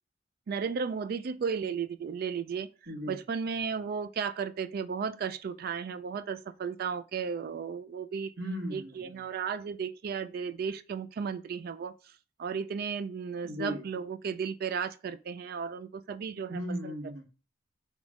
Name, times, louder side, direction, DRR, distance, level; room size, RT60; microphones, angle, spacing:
voice 1, 0.5-2.7 3.1-8.3 8.7-11.9 12.4-16.6, right 6 dB, 55° right, 0.3 m, -34 dB
voice 2, 2.9-3.2 8.4-9.2 13.4-13.8 16.5-17.2, equal, 80° right, 1.9 m, -36 dB
3.5 x 3.1 x 3.5 m
head